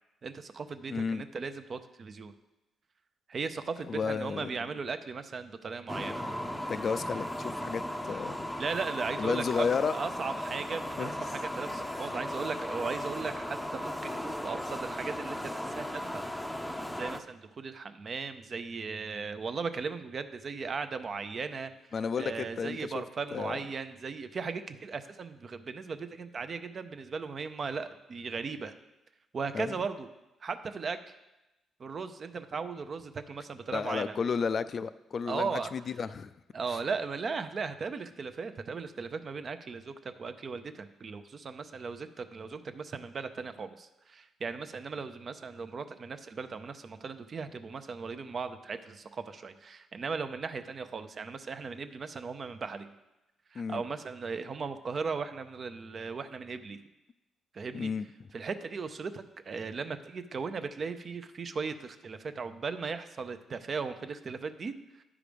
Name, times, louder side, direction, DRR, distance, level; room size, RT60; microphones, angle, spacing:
voice 1, 0.2-2.3 3.3-6.3 8.6-16.3 16.9-21.7 22.2-28.7 29.3-30.1 30.4-31.0 31.8-34.2 35.3-35.7 36.5-52.9 53.5-56.8 57.5-57.9 58.3-65.0, right 5 dB, 45° right, 10 dB, 0.6 m, -37 dB
voice 2, 0.9-1.2 3.9-4.5 6.7-8.5 9.2-9.9 11.0-11.1 21.9-23.0 23.3-23.6 29.5-29.7 33.7-36.3 36.7-36.8 53.5-53.8 57.7-58.1, left 5 dB, 50° left, 13 dB, 0.4 m, -32 dB
sound 1, 5.9-17.2, left 1 dB, 5° left, 0.6 m, -36 dB
10.0 x 4.9 x 5.1 m, 0.98 s
cardioid pair, 90°, 0 cm